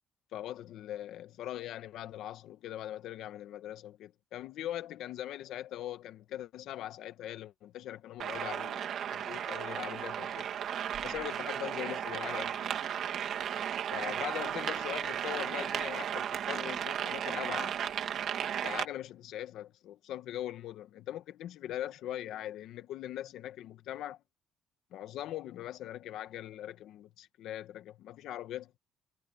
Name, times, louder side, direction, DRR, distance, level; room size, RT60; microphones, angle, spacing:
voice 1, 0.3-10.5 11.0-12.7 13.9-17.8 18.5-24.2 24.9-28.8, left 12 dB, 65° left, 1.3 m, -41 dB
sound 1, 8.2-18.8, right 9 dB, 45° right, 2.0 m, -35 dB
cardioid pair, 175°, 0 cm